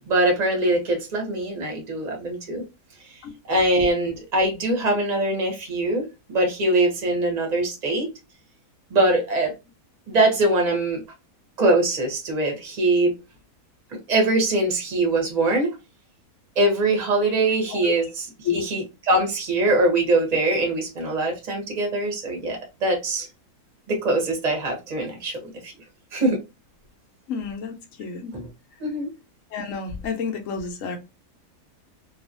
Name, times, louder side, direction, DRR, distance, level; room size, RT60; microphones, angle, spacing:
voice 1, 0.1-2.6 3.5-8.1 8.9-9.5 10.1-11.0 11.6-13.1 13.9-15.7 16.6-18.1 18.5-23.3 23.9-25.7 26.1-26.4 28.3-28.4 28.8-29.1, right 2 dB, 30° right, 0.8 m, -22 dB
voice 2, 27.3-28.4 29.5-31.0, left 6 dB, 65° left, 0.9 m, -30 dB
2.7 x 2.4 x 2.6 m
omnidirectional pair, 1.8 m